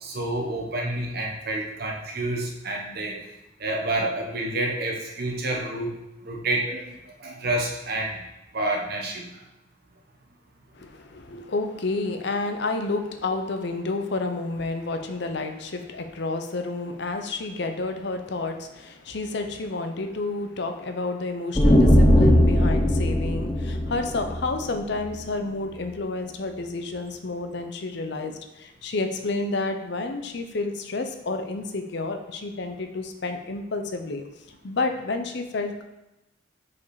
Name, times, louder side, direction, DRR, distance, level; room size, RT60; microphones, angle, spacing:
voice 1, 0.0-3.1 3.6-5.9 6.2-6.9 7.2-8.2 8.5-9.4, right 2 dB, 50° right, -1 dB, 0.9 m, -28 dB
voice 2, 10.7-35.8, left 3 dB, 60° left, 6 dB, 0.6 m, -30 dB
sound 1, 21.5-25.2, equal, 20° left, 0.6 m, -19 dB
5.3 x 4.7 x 4.8 m, 0.93 s
head